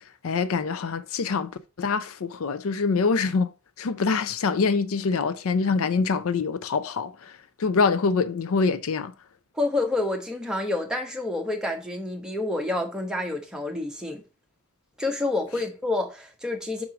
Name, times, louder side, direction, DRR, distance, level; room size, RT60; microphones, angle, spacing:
voice 1, 0.2-1.5 1.8-3.5 3.8-7.3 7.6-9.1, left 4 dB, 65° left, 0.5 m, -25 dB
voice 2, 9.5-14.2 15.0-16.8, left 2 dB, 5° right, 1.0 m, -28 dB
5.0 x 4.7 x 5.8 m
head